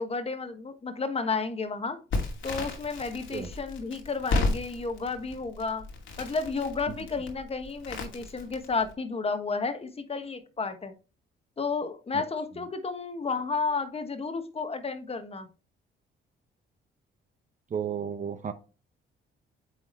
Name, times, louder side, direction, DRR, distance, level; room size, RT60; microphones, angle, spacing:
voice 1, 0.0-2.0 2.4-5.8 6.2-10.9 11.6-15.5, left 4 dB, 30° left, 8 dB, 1.3 m, -32 dB
Crackle, 2.1-8.9, left 3 dB, 75° left, 2.4 m, -34 dB
voice 2, 17.7-18.5, right 7 dB, 40° right, 9 dB, 0.8 m, -32 dB
9.3 x 3.6 x 3.1 m, 0.34 s
cardioid pair, 90°, 20 cm